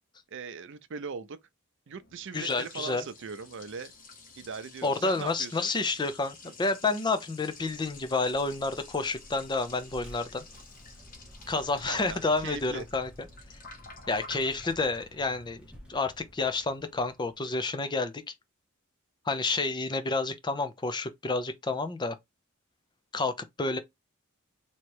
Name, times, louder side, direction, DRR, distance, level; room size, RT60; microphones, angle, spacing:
voice 1, 0.3-1.4 1.9-3.9 4.4-5.7 6.4-6.5 11.8-12.8, right 5 dB, 60° right, 0.5 m, -40 dB
Liquid, 1.9-17.0, left 4 dB, 40° left, 0.9 m, -51 dB
voice 2, 2.3-3.0 4.8-10.5 11.5-13.1 14.1-15.6 15.9-18.2 19.3-22.2 23.1-23.8, left 3 dB, 20° left, 0.5 m, -29 dB
Vehicle, 7.5-17.8, equal, 5° right, 1.0 m, -52 dB
3.2 x 2.9 x 4.5 m
head